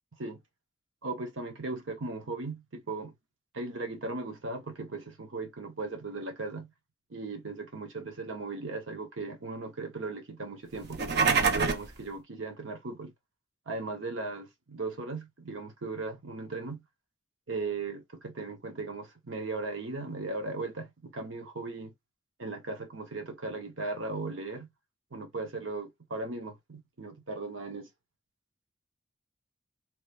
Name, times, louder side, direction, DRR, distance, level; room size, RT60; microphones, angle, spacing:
voice 1, 1.0-3.1 3.5-6.7 7.1-11.0 11.3-13.1 13.7-16.8 17.5-21.9 22.4-24.7 25.1-27.9, right 3 dB, 85° right, 0.9 m, -37 dB
sound 1, 10.8-11.9, right 5 dB, 60° right, 0.7 m, -25 dB
3.0 x 2.4 x 3.3 m
head